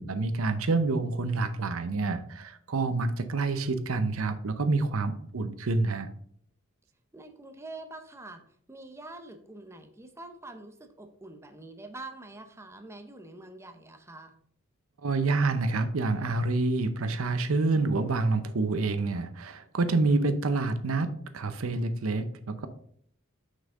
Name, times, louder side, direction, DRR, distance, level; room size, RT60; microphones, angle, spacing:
voice 1, 0.0-6.1 15.0-21.1 21.3-22.7, right 3 dB, 75° right, 10 dB, 0.7 m, -27 dB
voice 2, 7.1-8.4 8.7-14.3, right 2 dB, 15° right, 6 dB, 0.7 m, -45 dB
6.3 x 5.6 x 3.7 m, 0.63 s
head